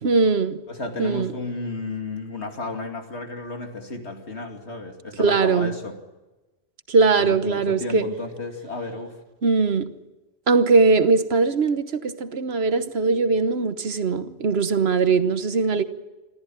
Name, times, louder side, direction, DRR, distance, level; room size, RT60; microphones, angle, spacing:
voice 1, 0.0-0.6 1.0-1.3 5.2-5.7 6.9-8.1 9.4-9.9 10.5-15.8, right 4 dB, 70° right, 1.4 m, -20 dB
voice 2, 0.7-5.9 7.2-9.2, left 3 dB, 85° left, 2.9 m, -33 dB
26.5 x 14.0 x 9.3 m
omnidirectional pair, 1.1 m